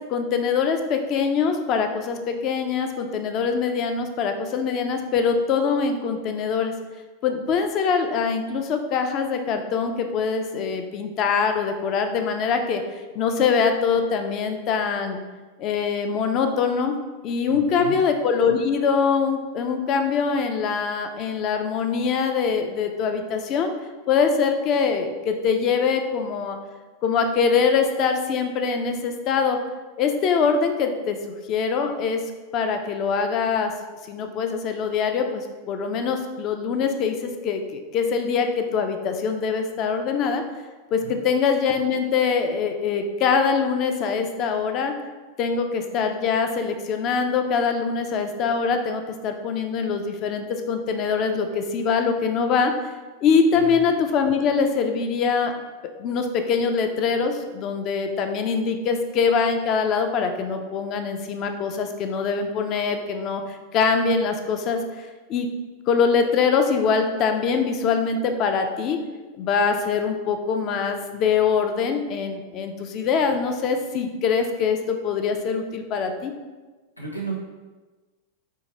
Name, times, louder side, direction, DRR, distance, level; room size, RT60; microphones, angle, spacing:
voice 1, 0.1-6.7 7.2-12.8 13.1-15.2 15.6-16.9 17.2-23.7 24.1-26.6 27.0-29.6 30.0-32.2 32.5-33.7 34.0-40.4 40.9-44.9 45.4-52.9 53.2-55.5 56.0-65.5 65.9-69.0 69.4-76.3, left 5 dB, 35° left, 6 dB, 0.4 m, -23 dB
voice 2, 17.4-18.0 41.0-41.2 53.5-53.8 77.0-77.3, right 3 dB, 90° left, -2 dB, 0.5 m, -34 dB
4.5 x 2.2 x 2.9 m, 1.3 s
figure-of-eight pair, 90°, 0 cm